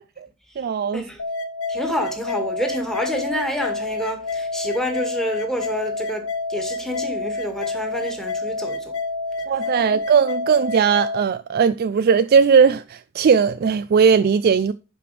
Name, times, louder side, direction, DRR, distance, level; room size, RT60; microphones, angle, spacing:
voice 1, 0.6-1.0 9.5-14.7, right 6 dB, 50° right, 0.4 m, -18 dB
sound 1, 1.2-11.2, left 3 dB, 90° left, 1.0 m, -28 dB
voice 2, 1.7-8.9 9.8-9.9, equal, ahead, 1.9 m, -28 dB
11.0 x 5.0 x 3.4 m
head